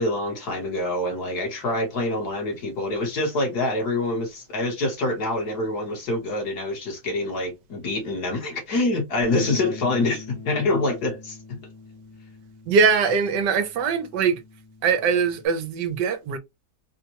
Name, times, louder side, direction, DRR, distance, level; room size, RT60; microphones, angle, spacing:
voice 1, 0.0-11.6, left 2 dB, 65° left, 1.8 m, -26 dB
Bass guitar, 9.2-15.5, left 3 dB, 25° left, 0.5 m, -43 dB
voice 2, 12.7-14.4 14.8-16.4, right 5 dB, 80° right, 1.4 m, -22 dB
4.1 x 2.3 x 2.8 m
omnidirectional pair, 1.9 m